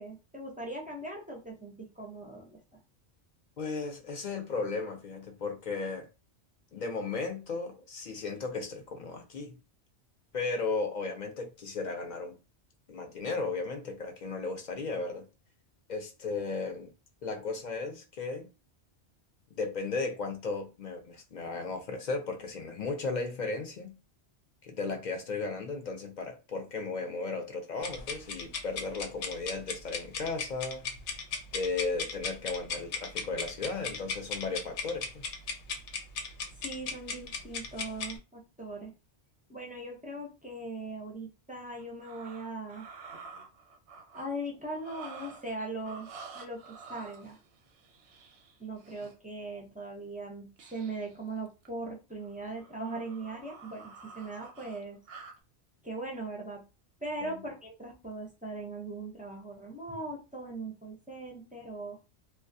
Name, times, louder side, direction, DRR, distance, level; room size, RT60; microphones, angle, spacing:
voice 1, 0.0-2.6 36.6-38.9 39.5-42.9 44.1-47.4 48.6-55.0 55.8-56.6 57.0-62.0, right 2 dB, 15° right, 0.3 m, -40 dB
voice 2, 3.6-6.1 6.7-9.6 10.3-12.4 12.9-15.3 15.9-16.9 17.2-18.5 19.6-23.9 24.6-30.9 31.5-35.2 57.2-57.3, left 3 dB, 55° left, 0.5 m, -35 dB
sound 1, 27.8-38.2, left 5 dB, 90° left, 0.9 m, -37 dB
sound 2, 41.8-44.3 44.7-45.6 45.8-49.2 50.6-51.2 51.5-51.7 52.2-55.4, right 4 dB, 85° right, 0.9 m, -49 dB
2.3 x 2.3 x 2.6 m
omnidirectional pair, 1.2 m